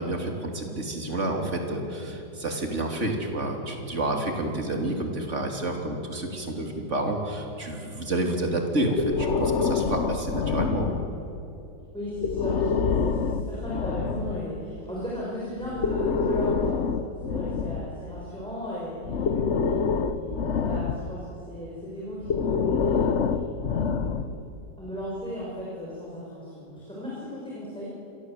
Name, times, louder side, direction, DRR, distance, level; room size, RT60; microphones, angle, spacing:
voice 1, 0.0-11.0, right 1 dB, 40° right, 2 dB, 3.5 m, -29 dB
Breathing, 9.0-11.4 12.1-14.5 15.6-18.4 19.0-21.3 22.2-24.5, left 5 dB, 50° left, 1.0 m, -27 dB
voice 2, 11.9-23.2 23.7-24.4 24.8-27.9, equal, 5° left, -6 dB, 5.9 m, -36 dB
28.0 x 23.0 x 7.9 m, 2.8 s
omnidirectional pair, 1.9 m